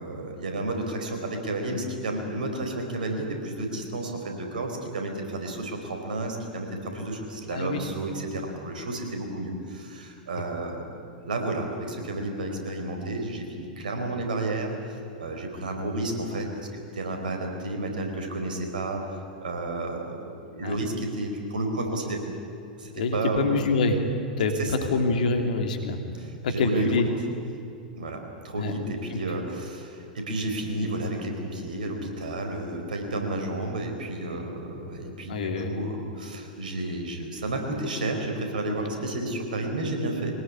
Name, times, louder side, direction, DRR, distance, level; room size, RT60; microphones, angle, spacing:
voice 1, 0.0-10.9 11.2-22.2 22.8-23.5 24.5-24.7 26.2-27.0 28.0-40.4, right 2 dB, 70° right, 3 dB, 4.6 m, -31 dB
voice 2, 7.5-7.8 20.6-20.7 23.0-24.0 24.4-26.0 26.4-27.1 28.6-28.7 35.3-35.7, left 3 dB, 65° left, 5 dB, 2.9 m, -25 dB
23.0 x 19.0 x 9.8 m, 2.6 s
figure-of-eight pair, 95°, 5 cm